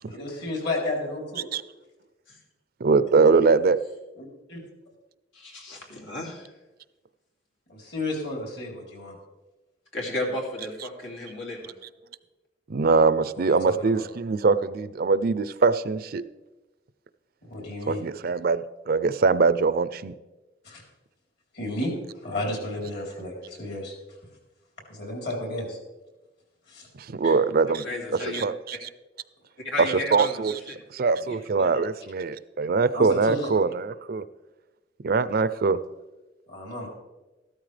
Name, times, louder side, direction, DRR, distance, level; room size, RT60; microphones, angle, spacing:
voice 1, 0.1-1.5 4.5-4.6 7.7-9.2 13.4-13.9 17.5-18.0 20.7-20.8 21.6-21.9 22.2-23.9 24.9-25.8 26.7-26.9 27.2-27.3 32.9-33.5 36.5-36.9, left 1 dB, 60° left, 0 dB, 3.6 m, -32 dB
voice 2, 2.8-3.8 12.7-16.2 17.9-20.1 27.0-28.9 29.8-30.6 30.9-34.2 35.0-35.8, right 4 dB, 55° right, 15 dB, 0.5 m, -23 dB
voice 3, 5.3-6.4 9.9-11.7 27.7-28.4 29.6-30.4 30.7-30.8 31.3-31.7, left 1 dB, 90° left, -1 dB, 2.8 m, -33 dB
14.0 x 12.5 x 3.3 m, 1.1 s
head